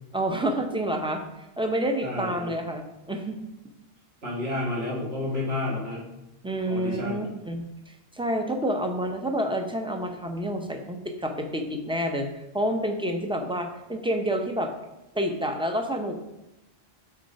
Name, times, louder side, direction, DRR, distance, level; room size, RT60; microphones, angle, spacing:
voice 1, 0.1-3.4 6.4-14.7 15.1-16.2, right 1 dB, 5° right, 4 dB, 0.5 m, -29 dB
voice 2, 2.0-2.5 4.2-6.0 6.6-7.2, left 2 dB, 80° right, -4 dB, 2.1 m, -30 dB
6.6 x 3.8 x 5.2 m, 0.92 s
omnidirectional pair, 1.0 m